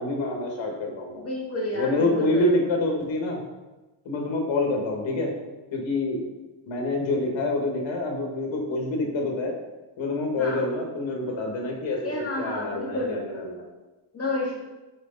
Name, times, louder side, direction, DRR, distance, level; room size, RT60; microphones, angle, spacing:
voice 1, 0.0-1.3 1.7-3.4 4.0-5.3 5.7-6.2 6.7-9.5 10.0-13.7, left 2 dB, 80° left, 1 dB, 1.6 m, -27 dB
voice 2, 1.2-2.5 10.4-10.6 12.0-13.5 14.1-14.6, left 2 dB, 30° left, -3 dB, 1.7 m, -30 dB
6.5 x 4.2 x 4.0 m, 1.1 s
cardioid pair, 125°, 45 cm